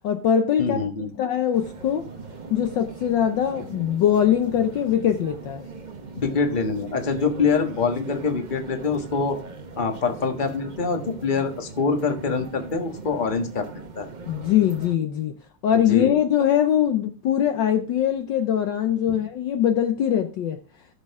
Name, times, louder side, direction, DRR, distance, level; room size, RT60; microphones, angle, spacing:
voice 1, 0.0-0.9 1.2-2.1 2.5-5.7 14.3-15.3 15.6-20.6, left 9 dB, 65° left, 7 dB, 1.3 m, -22 dB
voice 2, 0.6-1.1 6.1-9.4 9.8-14.1 15.7-16.2 19.1-19.2, left 4 dB, 25° left, 6 dB, 1.4 m, -25 dB
sound 1, 1.5-15.0, right 4 dB, 60° right, 0.4 m, -40 dB
15.0 x 6.7 x 3.6 m, 0.35 s
omnidirectional pair, 2.4 m